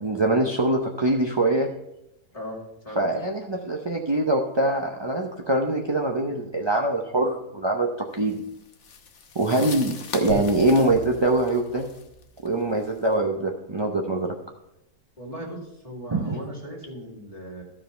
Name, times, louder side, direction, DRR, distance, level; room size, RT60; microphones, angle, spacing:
voice 1, 0.0-1.7 3.0-8.4 9.3-11.8 12.4-14.3 16.1-16.4, right 2 dB, 40° right, 1 dB, 0.3 m, -23 dB
sound 1, 8.2-13.1, left 6 dB, 55° left, 1.1 m, -41 dB
sound 2, 10.3-13.1, equal, 65° right, 1.8 m, -40 dB
voice 2, 15.2-17.6, equal, 20° left, -2 dB, 2.3 m, -37 dB
13.0 x 4.9 x 5.6 m, 0.84 s
omnidirectional pair, 1.7 m